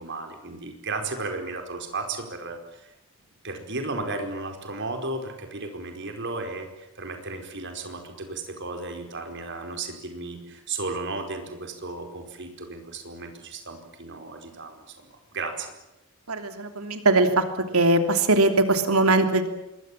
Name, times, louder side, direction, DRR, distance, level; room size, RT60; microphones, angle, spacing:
voice 1, 0.0-2.9 3.4-15.7, right 3 dB, 55° right, 5 dB, 4.8 m, -34 dB
voice 2, 16.3-17.4 17.7-19.5, right 2 dB, 90° right, 7 dB, 3.1 m, -21 dB
26.5 x 22.5 x 7.5 m, 0.94 s
head